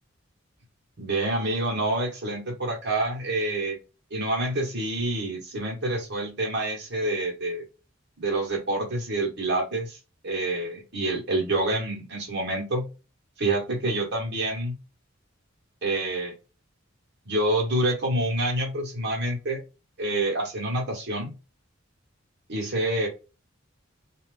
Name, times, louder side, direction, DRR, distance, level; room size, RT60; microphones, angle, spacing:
voice 1, 1.0-3.8 4.1-7.6 8.2-10.0 10.2-12.9 13.4-14.8 15.8-16.3 17.2-19.6 20.0-21.3 22.5-23.1, right 1 dB, 55° right, 0 dB, 1.3 m, -27 dB
2.7 x 2.4 x 3.3 m, 0.31 s
head